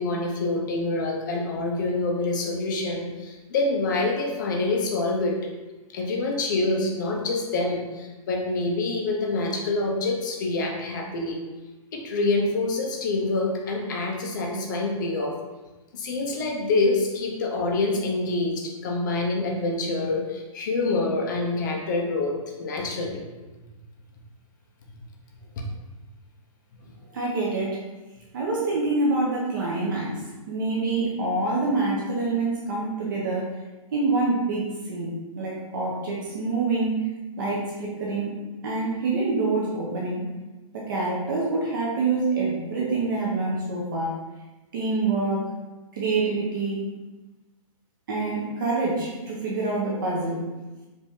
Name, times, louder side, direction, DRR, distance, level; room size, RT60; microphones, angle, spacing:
voice 1, 0.0-5.4 5.9-11.4 11.9-15.4 15.9-23.2, left 2 dB, 35° left, 1 dB, 0.7 m, -26 dB
voice 2, 27.1-27.7 28.3-30.1 30.5-33.5 33.9-37.0 37.4-38.3 38.6-40.2 40.7-44.1 44.7-45.4 45.9-46.8 48.1-50.4, right 3 dB, 35° right, -4 dB, 0.8 m, -26 dB
5.2 x 2.7 x 3.5 m, 1.2 s
hypercardioid pair, 170°, 18 cm